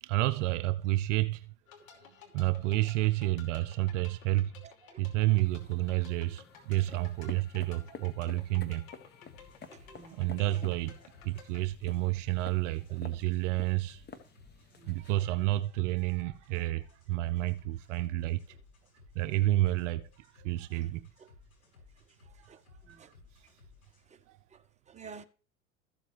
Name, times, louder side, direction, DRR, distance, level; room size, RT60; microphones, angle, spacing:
voice 1, 0.0-1.5 2.3-4.5 5.0-8.9 10.1-11.0 11.2-14.0 14.9-18.4 19.2-21.1 22.4-22.6 22.9-23.1 24.3-24.4, right 16 dB, 60° right, 0.6 m, -30 dB
sound 1, 1.7-11.6, left 7 dB, 70° left, 3.0 m, -56 dB
voice 2, 4.6-5.1 9.7-10.7 12.9-13.0 14.7-15.2 20.7-20.8 22.5-23.1 24.1-24.2 24.5-25.2, right 5 dB, 15° right, 1.0 m, -52 dB
sound 2, 5.3-15.1, left 5 dB, 25° left, 1.4 m, -52 dB
sound 3, 9.3-24.0, left 4 dB, 85° left, 5.1 m, -59 dB
14.0 x 7.3 x 3.3 m
hypercardioid pair, 85°, 42 cm